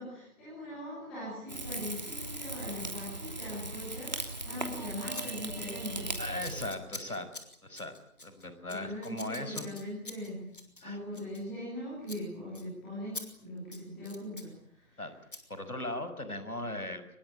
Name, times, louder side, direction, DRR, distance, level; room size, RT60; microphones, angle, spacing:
voice 1, 0.0-6.1 8.7-10.4 10.8-15.0, left 1 dB, ahead, -9 dB, 2.9 m, -41 dB
Rain / Fire, 1.5-6.7, right 2 dB, 30° right, 2.9 m, -38 dB
Scissors, 4.2-4.4 5.1-5.2 5.5-5.8 6.1-11.8 12.0-12.2 12.5-12.7 13.1-13.3 13.6-14.5 15.3-15.4, left 2 dB, 35° left, 3.9 m, -46 dB
voice 2, 6.2-7.3 7.6-7.9 8.2-9.7 10.8-11.0 15.0-15.1 15.5-17.1, left 1 dB, 80° left, 10 dB, 6.3 m, -38 dB
25.0 x 22.5 x 9.1 m, 0.68 s
figure-of-eight pair, 170°, 43 cm